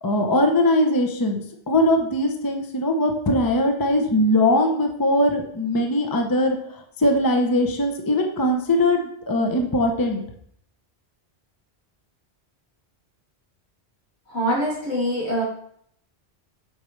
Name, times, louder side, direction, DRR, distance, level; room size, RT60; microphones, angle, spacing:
voice 1, 0.0-6.6 7.0-10.2, left 1 dB, 20° left, 3 dB, 0.7 m, -21 dB
voice 2, 14.3-15.4, equal, 85° left, -6 dB, 2.9 m, -24 dB
8.2 x 5.2 x 3.2 m, 0.66 s
omnidirectional pair, 1.1 m